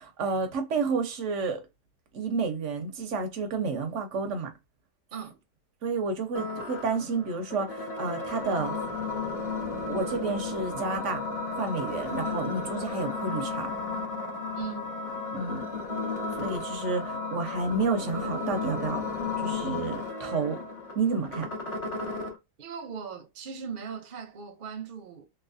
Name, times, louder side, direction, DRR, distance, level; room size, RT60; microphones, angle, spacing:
voice 1, 0.0-1.6 2.1-4.5 5.8-8.8 9.9-11.2 11.5-13.7 15.3-15.6 16.4-19.0 19.4-20.6 20.9-21.5, right 4 dB, 55° right, 0.9 m, -30 dB
sound 1, 6.3-22.3, left 4 dB, 25° left, 0.9 m, -34 dB
voice 2, 14.5-14.9 22.6-25.3, right 6 dB, 75° right, 0.4 m, -38 dB
3.2 x 3.0 x 2.5 m
omnidirectional pair, 1.8 m